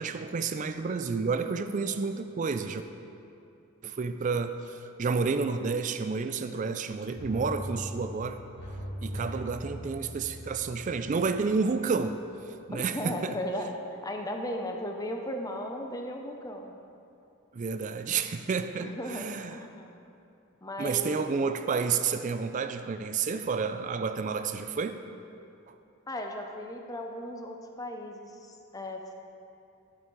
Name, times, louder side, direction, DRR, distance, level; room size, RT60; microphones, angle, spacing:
voice 1, 0.0-2.8 3.8-8.4 9.0-12.2 12.7-13.4 17.5-19.6 20.8-25.0, right 5 dB, 35° right, 10 dB, 0.3 m, -30 dB
sound 1, 7.2-11.9 12.2-12.3, equal, 50° left, 2.3 m, -40 dB
voice 2, 12.7-13.8 14.0-16.7 18.8-20.0 20.6-21.4 26.1-29.1, left 1 dB, 15° left, 3 dB, 0.5 m, -36 dB
11.5 x 5.3 x 4.6 m, 2.7 s
head